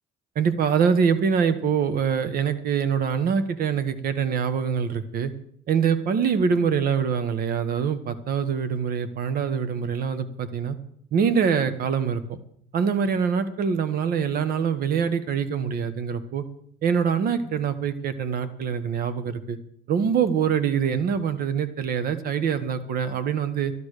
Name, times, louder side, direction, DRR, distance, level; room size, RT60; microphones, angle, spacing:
voice 1, 0.3-5.3 5.7-10.8 11.1-12.4 12.7-16.4 16.8-19.6 19.9-23.7, right 6 dB, 60° right, 11 dB, 1.4 m, -24 dB
12.0 x 12.0 x 6.6 m, 0.68 s
cardioid pair, 110°, 17 cm